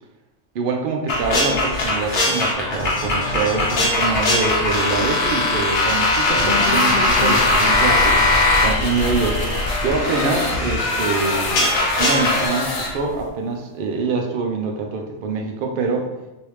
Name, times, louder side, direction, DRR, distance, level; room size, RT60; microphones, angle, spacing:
voice 1, 0.5-9.4 9.8-11.6 12.0-16.1, right 4 dB, 60° right, 2 dB, 0.6 m, -25 dB
sound 1, 1.1-12.5, left 2 dB, 60° left, 1.0 m, -20 dB
sound 2, 3.1-11.0 11.3-12.8, left 3 dB, 85° left, 1.5 m, -32 dB
sound 3, 6.3-13.3, left 2 dB, 45° left, 0.5 m, -26 dB
3.3 x 2.7 x 3.0 m, 0.99 s
omnidirectional pair, 1.2 m